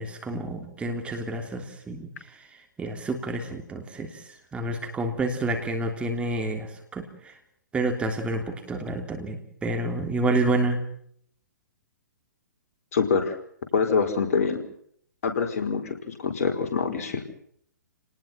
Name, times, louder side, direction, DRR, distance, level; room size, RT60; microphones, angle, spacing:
voice 1, 0.0-7.3 7.7-10.8, right 2 dB, 10° right, 4 dB, 3.2 m, -29 dB
voice 2, 12.9-13.4 13.7-14.6 15.2-17.2, left 5 dB, 55° left, 5 dB, 4.8 m, -25 dB
29.0 x 20.0 x 5.8 m, 0.65 s
figure-of-eight pair, 125°, 10 cm